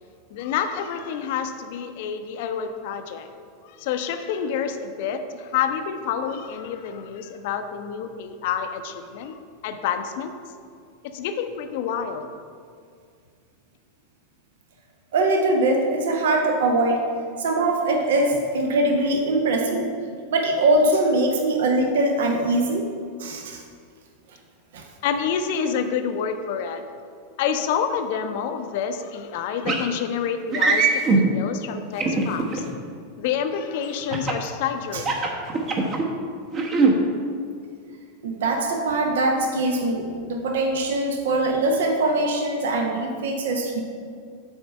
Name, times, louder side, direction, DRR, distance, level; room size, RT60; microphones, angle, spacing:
voice 1, 0.3-3.3 3.8-10.3 11.1-12.3 25.0-26.8 27.4-32.6 33.2-35.1, left 7 dB, 55° left, 8 dB, 0.5 m, -28 dB
voice 2, 15.1-17.0 17.4-19.9 20.3-22.9 23.2-23.6 24.7-24.8 34.9-35.0 38.2-43.8, right 2 dB, 65° right, 3 dB, 0.8 m, -22 dB
sound 1, 29.7-29.9 30.5-31.2 32.0-32.6 34.1-34.4 34.9-36.0 36.5-36.9, right 4 dB, 35° right, 1.1 m, -20 dB
7.9 x 4.3 x 5.6 m, 2.2 s
figure-of-eight pair, 90°, 0 cm